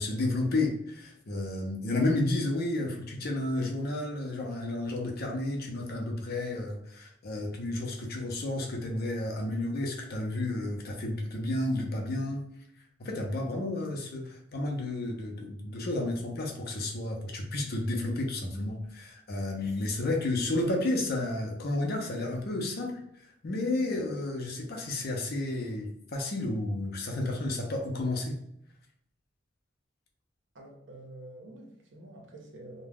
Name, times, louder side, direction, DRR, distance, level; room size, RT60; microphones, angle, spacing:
voice 1, 0.0-12.4 13.0-28.3, left 2 dB, 55° left, 0.6 m, -31 dB
voice 2, 30.5-32.9, right 1 dB, 65° right, 0.7 m, -47 dB
2.3 x 2.1 x 3.4 m
head